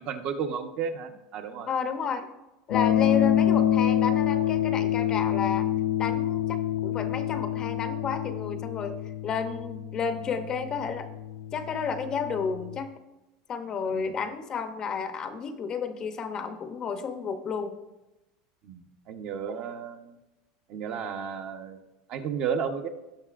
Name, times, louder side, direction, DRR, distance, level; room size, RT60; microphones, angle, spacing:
voice 1, 0.0-1.7 13.9-14.2 18.6-20.2 20.7-21.8 22.1-22.9, right 7 dB, 45° right, 6 dB, 0.9 m, -33 dB
voice 2, 1.7-2.3 2.7-5.7 6.0-11.1 11.5-12.9 13.5-17.8, left 6 dB, 25° left, 8 dB, 0.7 m, -32 dB
sound 1, 2.7-12.8, left 10 dB, 65° left, 0.5 m, -27 dB
17.0 x 5.9 x 2.5 m, 0.98 s
supercardioid pair, 160°, 3 cm